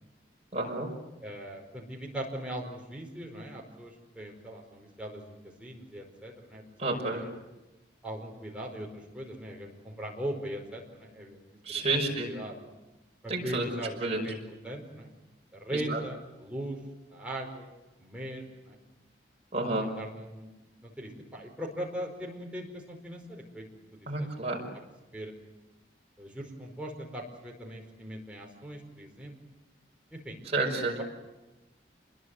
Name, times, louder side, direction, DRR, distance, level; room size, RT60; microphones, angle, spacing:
voice 1, 0.5-0.9 6.8-7.2 11.7-12.3 13.3-13.6 14.0-14.2 15.7-16.0 19.5-19.9 24.1-24.6 30.5-31.0, right 2 dB, 35° right, 0 dB, 5.7 m, -30 dB
voice 2, 1.2-6.6 7.1-7.3 8.0-11.4 11.7-12.6 13.2-15.1 15.5-16.8 17.1-17.7 18.0-18.8 19.8-20.5 20.8-23.6 24.2-24.5 25.1-25.3 26.2-29.3 30.1-30.4, right 1 dB, 5° right, -1 dB, 4.8 m, -40 dB
27.5 x 21.5 x 7.9 m, 1.1 s
head